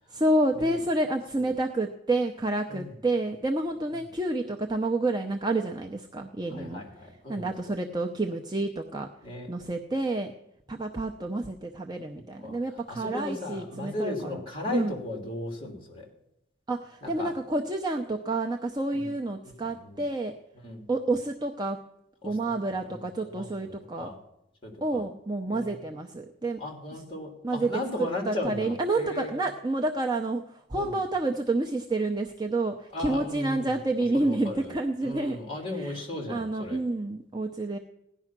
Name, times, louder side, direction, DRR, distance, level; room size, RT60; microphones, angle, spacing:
voice 1, 0.1-6.8 7.3-9.1 9.5-10.3 10.7-14.4 14.7-15.0 16.7-20.3 20.9-21.8 22.2-24.1 24.8-26.6 27.4-27.7 28.0-35.4 35.7-36.0 36.3-37.8, right 2 dB, 20° right, 2 dB, 0.7 m, -29 dB
voice 2, 6.5-7.7 9.2-9.5 12.4-12.6 12.9-16.1 17.0-17.3 18.9-19.1 19.4-20.0 20.6-20.9 22.2-22.4 22.6-24.2 24.6-25.0 25.5-25.8 26.6-29.5 30.7-31.0 32.9-33.8 34.1-34.7 35.0-36.8, left 1 dB, 25° left, 2 dB, 3.1 m, -36 dB
16.5 x 11.0 x 6.0 m, 0.82 s
head